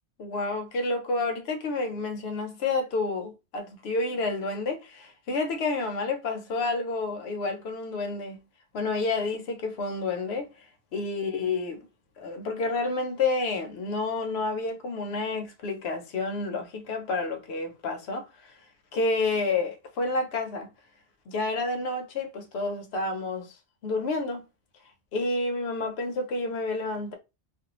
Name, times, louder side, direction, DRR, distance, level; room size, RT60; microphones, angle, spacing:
voice 1, 0.2-8.4 8.7-11.9 12.2-18.6 18.9-20.7 21.3-23.5 23.8-24.4 25.1-27.1, left 3 dB, 65° left, 0.9 m, -29 dB
2.5 x 2.3 x 2.9 m
omnidirectional pair, 1.2 m